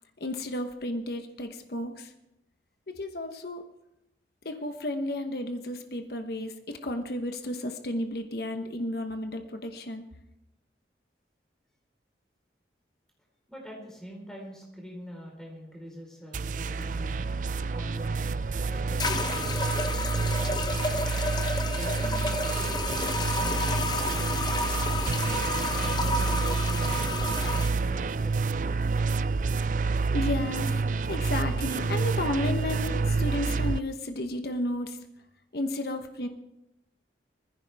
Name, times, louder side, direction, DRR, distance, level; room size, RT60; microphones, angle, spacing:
voice 1, 0.2-2.1 2.9-3.7 4.4-10.0 30.1-35.0 35.5-36.3, left 1 dB, 60° left, 6 dB, 1.0 m, -33 dB
voice 2, 13.5-17.3 17.7-21.1 21.7-24.4 25.0-28.4, equal, 5° left, -2 dB, 4.2 m, -44 dB
sound 1, 16.3-33.8, right 4 dB, 45° right, 0.4 m, -28 dB
sound 2, 18.2-18.3 19.0-27.7, left 2 dB, 25° left, 0.8 m, -31 dB
20.5 x 15.5 x 3.5 m, 0.88 s
head